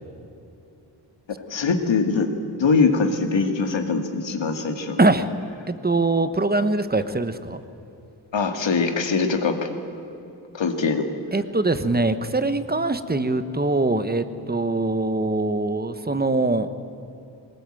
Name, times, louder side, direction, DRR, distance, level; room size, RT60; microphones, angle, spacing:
voice 1, 1.5-5.0 8.3-9.6 10.5-11.1, left 4 dB, 80° left, 6 dB, 2.3 m, -22 dB
voice 2, 5.0-5.3 5.7-7.6 10.8-10.9 11.3-16.7, right 2 dB, 20° right, 11 dB, 1.1 m, -23 dB
22.0 x 20.0 x 9.1 m, 2.8 s
wide cardioid pair, 130°, 44 cm